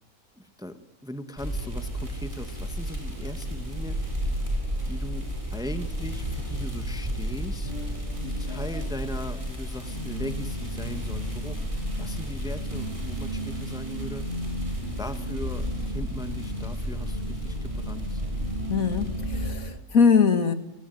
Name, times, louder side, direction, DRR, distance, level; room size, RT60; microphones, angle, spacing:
voice 1, 0.4-4.0 4.8-7.7 8.2-14.2 15.0-18.2, left 1 dB, 5° right, 8 dB, 1.6 m, -39 dB
sound 1, 1.4-19.5, equal, 20° right, 7.7 m, -32 dB
sound 2, 7.6-19.7, equal, 35° left, 8.3 m, -37 dB
voice 2, 18.7-20.5, left 6 dB, 65° left, 9 dB, 2.4 m, -22 dB
29.5 x 20.0 x 9.4 m, 0.84 s
omnidirectional pair, 1.6 m